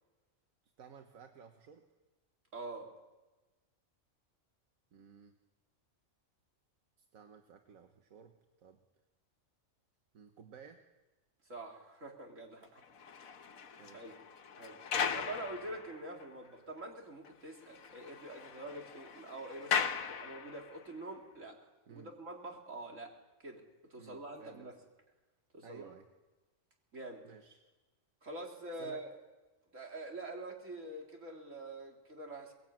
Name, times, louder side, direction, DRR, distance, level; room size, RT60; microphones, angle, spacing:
voice 1, 0.8-1.9 4.9-5.4 7.0-8.8 10.1-10.9 13.8-14.1 21.9-22.1 24.0-24.8 25.6-26.1 27.2-27.6 28.8-29.0, right 7 dB, 85° right, 5 dB, 1.6 m, -55 dB
voice 2, 2.5-2.9 11.4-12.8 13.2-13.4 13.9-14.1 14.6-21.6 21.9-23.1 23.4-23.6 23.9-24.7 25.5-25.9 26.9-27.3 28.2-29.1 29.7-32.5, right 2 dB, 65° right, 0 dB, 3.9 m, -45 dB
sound 1, 12.8-16.3 16.8-16.9 17.2-17.3 17.6-20.9, left 6 dB, 85° left, 1.5 m, -38 dB
23.0 x 20.5 x 8.9 m, 1.2 s
omnidirectional pair, 1.4 m